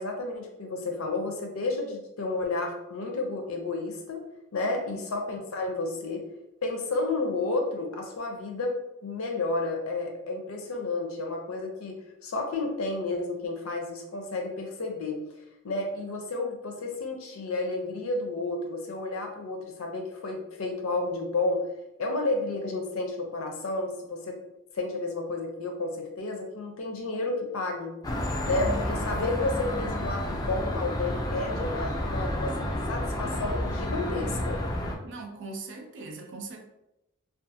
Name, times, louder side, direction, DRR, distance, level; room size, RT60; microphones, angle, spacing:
voice 1, 0.0-4.2 4.5-6.3 6.6-15.2 15.6-21.7 22.0-24.4 24.7-27.9 28.4-34.6, left 2 dB, 70° left, 3 dB, 0.5 m, -31 dB
sound 1, 28.0-34.9, left 1 dB, 20° left, 0.3 m, -30 dB
voice 2, 35.0-36.6, right 3 dB, 55° right, 2 dB, 0.4 m, -40 dB
2.4 x 2.4 x 2.7 m, 0.89 s
head